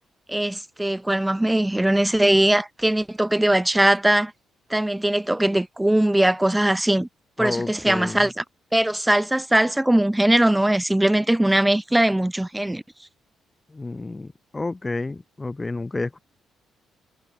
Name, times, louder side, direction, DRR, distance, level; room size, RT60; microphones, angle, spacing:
voice 1, 0.3-4.3 4.7-7.1 7.4-8.4 8.7-12.8, right 1 dB, 10° right, 0.6 m, -20 dB
voice 2, 7.4-8.3 13.7-16.2, left 3 dB, 20° left, 1.1 m, -30 dB
cardioid pair, 90°, 0 cm